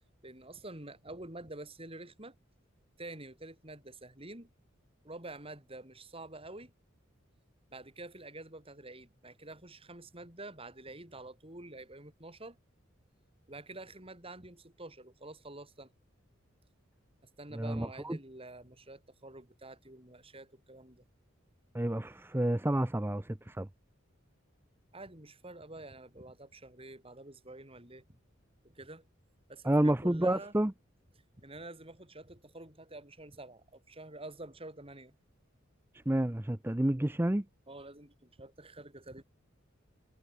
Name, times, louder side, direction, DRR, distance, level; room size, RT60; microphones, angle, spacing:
voice 1, 0.2-2.4 3.0-4.5 5.0-6.7 7.7-12.6 13.5-15.9 17.4-21.0 24.9-28.2 28.6-29.0 29.5-30.5 31.4-35.1 37.7-39.2, right 2 dB, 30° right, 6.0 m, -48 dB
voice 2, 17.5-18.2 21.7-23.7 29.6-30.7 36.1-37.4, right 1 dB, 10° right, 0.6 m, -29 dB
head